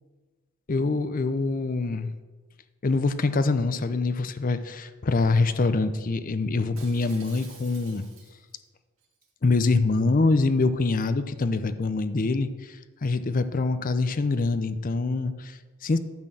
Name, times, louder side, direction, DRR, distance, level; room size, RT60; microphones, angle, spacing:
voice 1, 0.7-2.1 2.8-8.0 9.4-16.0, left 3 dB, 40° left, 11 dB, 0.5 m, -25 dB
Shatter, 6.8-8.6 9.0-9.3, right 6 dB, 60° right, 2.1 m, -50 dB
12.0 x 4.4 x 7.5 m, 1.3 s
head